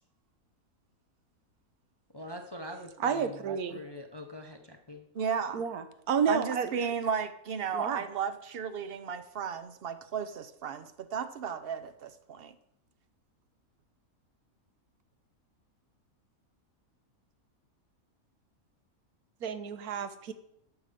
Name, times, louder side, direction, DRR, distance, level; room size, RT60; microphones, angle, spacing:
voice 1, 2.1-5.1, left 1 dB, 25° left, 4 dB, 0.6 m, -44 dB
voice 2, 3.0-3.8 5.5-6.7 7.7-8.0 19.4-20.3, right 7 dB, 85° right, 10 dB, 1.4 m, -30 dB
voice 3, 5.1-5.6 6.3-12.6, right 7 dB, 50° right, 11 dB, 0.8 m, -34 dB
11.5 x 6.9 x 5.1 m, 0.76 s
omnidirectional pair, 1.5 m